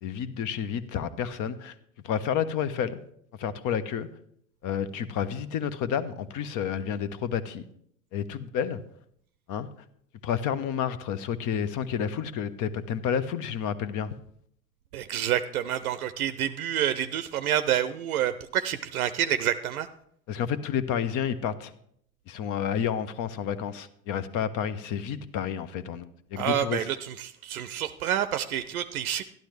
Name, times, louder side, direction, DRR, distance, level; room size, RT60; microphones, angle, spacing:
voice 1, 0.0-1.7 2.0-3.0 3.4-4.1 4.6-7.6 8.1-8.8 9.5-9.7 10.2-14.1 20.3-21.7 22.3-26.9, left 8 dB, 45° left, 14 dB, 0.8 m, -30 dB
voice 2, 14.9-19.9 26.4-29.2, right 10 dB, 80° right, 12 dB, 0.5 m, -28 dB
12.0 x 11.5 x 3.2 m, 0.68 s
figure-of-eight pair, 65°, 43 cm